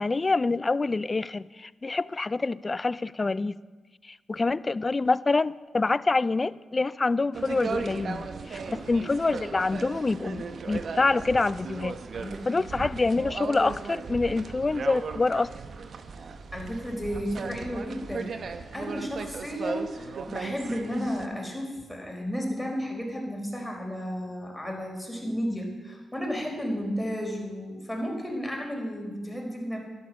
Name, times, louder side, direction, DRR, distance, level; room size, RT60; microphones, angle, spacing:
voice 1, 0.0-3.6 4.1-12.0 12.5-15.5, left 3 dB, 35° left, 19 dB, 0.4 m, -26 dB
sound 1, 7.3-21.3, right 5 dB, 60° right, 1.0 m, -37 dB
voice 2, 8.6-9.1 12.1-12.5 16.5-18.4 18.7-29.8, equal, 5° left, 0 dB, 4.6 m, -33 dB
12.5 x 11.5 x 6.4 m, 1.3 s
supercardioid pair, 45°, 0 cm